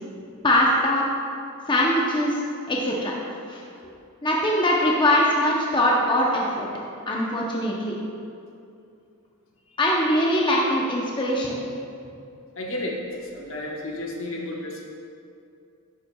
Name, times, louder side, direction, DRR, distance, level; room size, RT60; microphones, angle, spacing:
voice 1, 0.4-1.0 1.7-3.1 3.5-3.6 4.2-6.7 7.1-8.0 9.8-11.6, left 1 dB, 20° left, -3 dB, 0.7 m, -22 dB
voice 2, 12.5-14.9, left 1 dB, 65° left, -1 dB, 1.1 m, -33 dB
11.0 x 7.2 x 2.3 m, 2.5 s
head